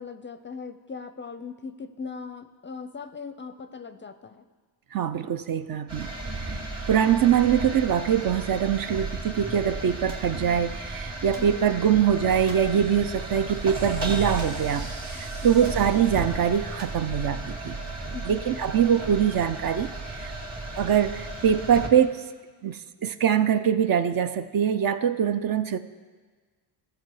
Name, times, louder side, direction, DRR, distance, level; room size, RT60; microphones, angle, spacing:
voice 1, 0.0-4.4 11.4-11.7 15.5-15.7 18.1-18.5, left 5 dB, 25° left, 11 dB, 0.5 m, -39 dB
voice 2, 4.9-6.1 6.5-6.6 6.9-17.8 18.2-20.3 20.8-22.2 22.6-25.8, right 8 dB, 50° right, 11 dB, 0.6 m, -23 dB
sound 1, 5.9-21.9, right 2 dB, 35° right, 2.6 m, -34 dB
sound 2, 10.1-10.3 11.3-11.6 12.5-12.8 14.4-14.8 15.0-15.1 15.6-15.9 16.8-17.1, right 3 dB, 65° right, 1.6 m, -47 dB
sound 3, 12.4-18.2, right 3 dB, 80° right, 1.9 m, -49 dB
14.0 x 6.9 x 4.7 m, 1.5 s
supercardioid pair, 65°, 47 cm